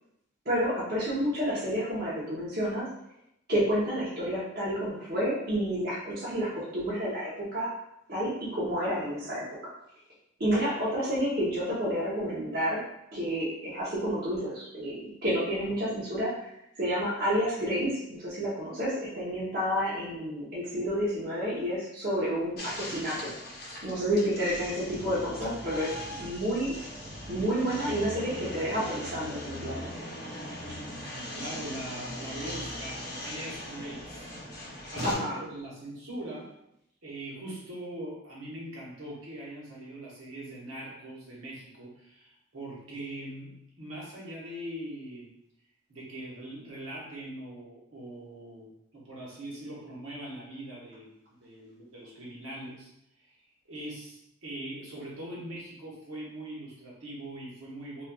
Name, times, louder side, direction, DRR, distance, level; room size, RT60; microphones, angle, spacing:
voice 1, 0.5-2.9 3.5-7.7 8.1-9.7 10.4-12.8 13.1-16.4 16.7-23.2 23.8-25.9 26.2-26.7 27.3-29.9 35.0-35.4, equal, 50° right, -8 dB, 0.8 m, -30 dB
sound 1, 22.6-35.1, left 1 dB, 50° left, 0.7 m, -39 dB
voice 2, 31.3-34.3 34.9-36.5 37.0-45.4 45.9-52.9 53.2-53.4 53.7-58.0, right 1 dB, 75° right, -5 dB, 1.1 m, -41 dB
4.2 x 2.3 x 2.3 m, 0.81 s
head